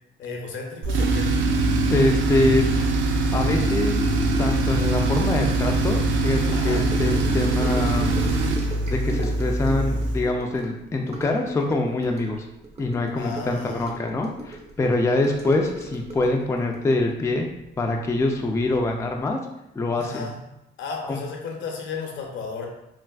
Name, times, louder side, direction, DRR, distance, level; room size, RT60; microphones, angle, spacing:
voice 1, 0.2-1.3 6.5-6.9 13.2-13.9 20.0-20.4 20.8-22.7, left 4 dB, 75° left, 1 dB, 0.7 m, -34 dB
Tools, 0.8-10.3, right 2 dB, 75° right, 0.4 m, -22 dB
voice 2, 1.9-2.7 3.3-4.0 4.4-8.2 8.9-12.5 12.8-17.5 17.8-19.4 19.7-20.3 21.0-21.2, left 2 dB, 15° left, 2 dB, 0.3 m, -24 dB
Gurgling / Sink (filling or washing) / Trickle dribble, 6.7-18.3 18.6-18.9 19.2-19.3, right 2 dB, 35° right, 0.7 m, -38 dB
3.3 x 2.5 x 2.3 m, 0.85 s
cardioid pair, 90°, 20 cm